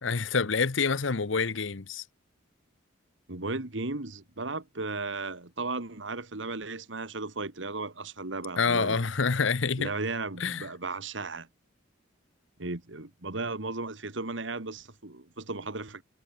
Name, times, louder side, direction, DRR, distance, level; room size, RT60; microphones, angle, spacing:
voice 1, 0.0-2.0 8.6-9.9 10.4-10.7, left 5 dB, 85° left, 0.9 m, -27 dB
voice 2, 3.3-9.0 9.8-11.5 12.6-16.0, right 3 dB, 75° right, 2.0 m, -35 dB
head